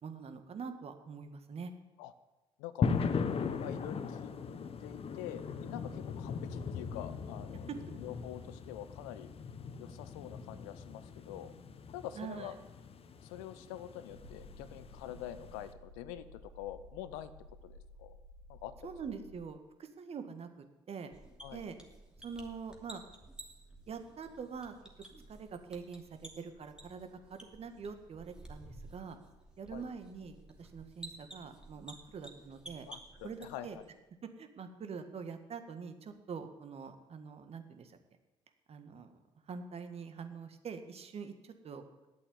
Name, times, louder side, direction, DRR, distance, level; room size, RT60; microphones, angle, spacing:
voice 1, 0.0-1.7 7.7-7.8 12.2-12.5 18.8-21.1 21.5-21.8 22.2-23.0 23.9-24.7 25.3-29.2 29.6-32.9 33.2-33.8 34.4-38.0 38.7-39.1 39.5-42.1, right 6 dB, 45° right, 8 dB, 1.8 m, -44 dB
sound 1, 2.8-15.7, left 5 dB, 45° left, 1.1 m, -39 dB
voice 2, 3.6-4.3 4.8-7.7 8.0-9.3 9.8-11.5 11.9-12.6 13.2-17.3 17.6-18.2 18.5-18.9 21.4-21.6 29.7-29.8 32.9-33.7, left 12 dB, 75° left, 14 dB, 0.8 m, -46 dB
sound 2, 14.1-19.5, left 1 dB, 85° right, 1.6 m, -55 dB
sound 3, 21.1-33.9, right 1 dB, 5° right, 2.8 m, -53 dB
9.8 x 8.4 x 9.2 m, 1.1 s
hypercardioid pair, 50°, 14 cm